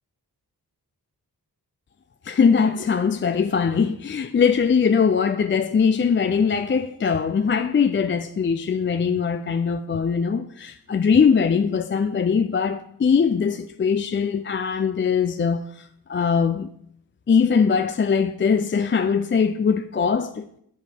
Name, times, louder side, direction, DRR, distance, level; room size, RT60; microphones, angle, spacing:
voice 1, 2.2-16.7 17.3-20.6, left 6 dB, 30° left, 0.4 m, -21 dB
9.1 x 5.2 x 4.4 m
cardioid pair, 45°, 40 cm